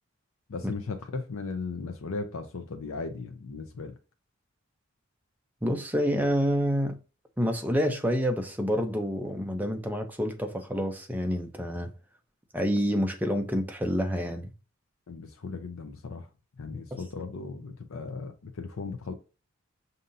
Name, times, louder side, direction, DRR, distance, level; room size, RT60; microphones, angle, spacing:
voice 1, 0.5-3.9 15.1-16.3 16.6-19.1, left 4 dB, 70° left, 0.5 m, -37 dB
voice 2, 5.6-7.0 7.4-11.9 12.5-14.5 16.9-17.0, equal, 10° right, 0.5 m, -28 dB
5.3 x 2.7 x 2.5 m
head